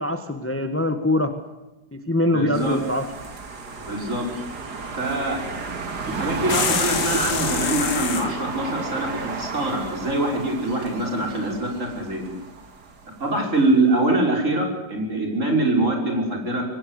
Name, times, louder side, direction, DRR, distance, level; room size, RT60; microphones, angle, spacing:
voice 1, 0.0-1.3 1.9-3.1, left 1 dB, 10° left, 8 dB, 1.4 m, -23 dB
voice 2, 2.3-2.8 3.8-4.3 5.0-5.4 6.1-12.3 13.2-16.6, right 2 dB, 45° right, 2 dB, 5.9 m, -24 dB
sound 1, 2.5-13.3, right 4 dB, 70° right, 2.8 m, -33 dB
sound 2, 6.5-8.3, left 7 dB, 85° left, 2.0 m, -26 dB
24.5 x 18.5 x 8.2 m, 1.0 s
omnidirectional pair, 1.8 m